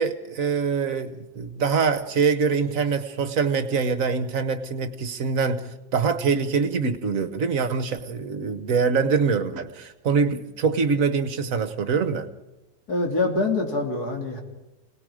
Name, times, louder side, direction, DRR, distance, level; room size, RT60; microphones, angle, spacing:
voice 1, 0.0-12.3, right 5 dB, 50° right, 1.3 m, -24 dB
voice 2, 12.9-14.4, left 3 dB, 55° left, 3.4 m, -25 dB
28.5 x 18.5 x 5.0 m
omnidirectional pair, 2.0 m